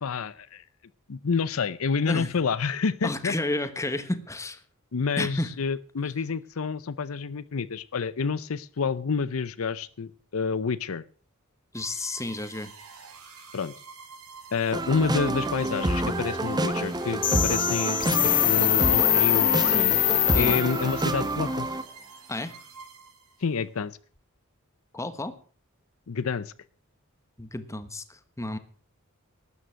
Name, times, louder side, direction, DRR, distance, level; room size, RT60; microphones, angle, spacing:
voice 1, 0.0-0.6 1.1-3.3 4.9-11.0 13.5-13.7 14.5-18.0 18.2-20.0 20.3-21.7 23.4-24.0 26.1-26.5, left 5 dB, 70° left, 16 dB, 0.6 m, -28 dB
voice 2, 3.0-4.6 5.2-5.5 11.7-12.7 20.3-20.6 22.3-22.5 24.9-25.3 27.4-28.6, left 1 dB, 15° left, 11 dB, 1.2 m, -31 dB
sound 1, 11.7-23.6, right 5 dB, 90° right, 4.7 m, -47 dB
sound 2, 14.7-21.8, right 2 dB, 20° right, 1.0 m, -28 dB
sound 3, 17.2-21.1, left 12 dB, 40° left, 1.0 m, -23 dB
12.5 x 9.4 x 7.5 m, 0.43 s
head